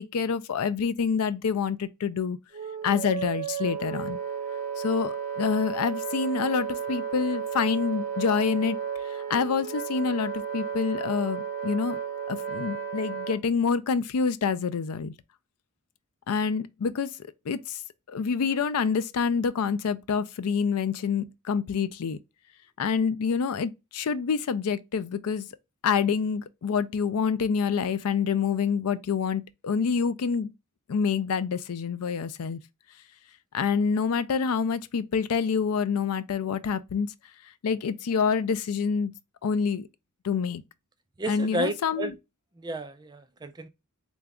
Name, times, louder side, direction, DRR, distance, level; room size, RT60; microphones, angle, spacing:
voice 1, 0.0-2.4 2.8-4.2 4.8-8.8 9.3-12.0 12.3-15.1 16.3-17.1 17.5-17.8 18.1-22.2 22.8-25.5 25.8-30.5 30.9-32.6 33.5-37.1 37.6-39.1 39.4-39.9 40.2-40.6 41.3-42.1, left 6 dB, 80° left, 0.4 m, -27 dB
Wind instrument woodwind instrument, 2.5-13.4, right 7 dB, 35° right, 0.9 m, -33 dB
voice 2, 41.2-42.1 42.6-43.7, right 1 dB, 20° right, 0.4 m, -32 dB
3.9 x 2.4 x 3.3 m
head